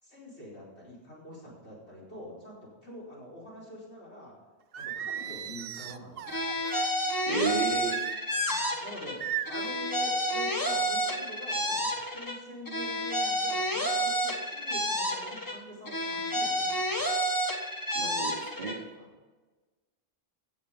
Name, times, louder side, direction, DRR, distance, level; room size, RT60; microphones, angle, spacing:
voice 1, 0.0-4.3 4.7-6.6 8.5-17.1 18.9-19.1, equal, 85° left, -5 dB, 4.9 m, -46 dB
Singing, 4.7-6.9 7.9-8.7 9.2-9.7, right 11 dB, 65° right, 0.8 m, -37 dB
sound 1, 6.3-9.2 9.5-12.4 12.7-15.6 15.9-18.8, equal, 20° left, 1.3 m, -30 dB
voice 2, 7.3-8.0 17.9-18.8, right 3 dB, 40° right, -3 dB, 3.5 m, -32 dB
15.5 x 7.4 x 5.2 m, 1.3 s
omnidirectional pair, 1.1 m